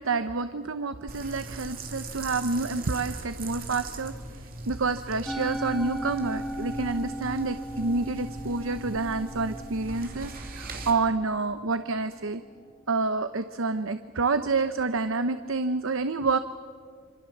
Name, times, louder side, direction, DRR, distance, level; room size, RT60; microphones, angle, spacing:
voice 1, 0.0-4.1 4.7-12.4 12.9-16.4, right 3 dB, 80° right, 11 dB, 0.8 m, -28 dB
sound 1, 1.1-10.9, right 2 dB, 45° right, 3.2 m, -40 dB
Musical instrument, 5.3-11.7, right 1 dB, ahead, 0.6 m, -37 dB
27.0 x 26.0 x 7.3 m, 2.1 s
head